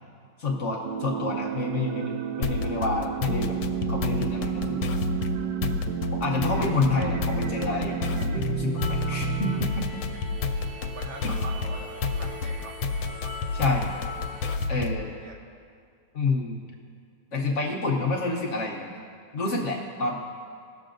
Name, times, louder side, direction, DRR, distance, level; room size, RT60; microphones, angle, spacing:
voice 1, 0.4-3.5 3.9-4.9 6.1-10.0 11.2-11.4 13.5-13.9 14.7-15.1 16.1-16.6 17.3-19.0 19.3-20.2, left 3 dB, 60° left, -1 dB, 0.8 m, -28 dB
sound 1, 0.8-9.7, right 8 dB, 70° right, 1.1 m, -31 dB
sound 2, 2.4-15.1, left 4 dB, 80° left, 1.3 m, -30 dB
sound 3, 8.8-14.6, left 2 dB, 5° left, 1.4 m, -41 dB
voice 2, 10.9-12.8 13.2-13.8 14.6-14.9 15.2-15.4, right 3 dB, 50° right, 1 dB, 0.9 m, -43 dB
17.0 x 6.6 x 2.5 m, 2.2 s
omnidirectional pair, 2.2 m